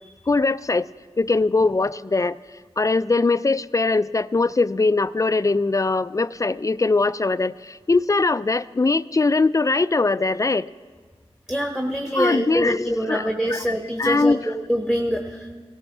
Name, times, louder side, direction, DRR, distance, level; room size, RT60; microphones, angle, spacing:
voice 1, 0.3-0.9 1.2-2.4 2.8-10.7 12.1-13.2 13.5-14.5, left 3 dB, 30° left, 16 dB, 0.3 m, -21 dB
voice 2, 11.5-15.5, equal, 5° right, 3 dB, 1.1 m, -25 dB
17.5 x 13.5 x 3.3 m, 1.5 s
cardioid pair, 45°, 11 cm